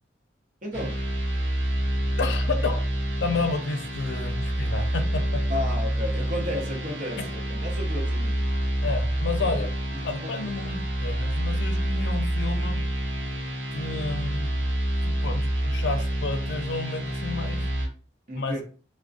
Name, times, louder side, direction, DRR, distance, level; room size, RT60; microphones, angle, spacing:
voice 1, 0.6-1.0 5.5-8.4 9.4-9.5 10.2-10.3 18.3-18.6, left 1 dB, 45° right, 0.7 m, -33 dB
sound 1, 0.7-17.9, right 1 dB, 80° right, 0.9 m, -27 dB
voice 2, 2.2-2.9 3.2-5.4 8.8-9.7 10.0-12.8 13.7-14.7 15.0-17.7 18.3-18.6, left 3 dB, 85° left, 0.5 m, -31 dB
2.4 x 2.1 x 2.4 m
head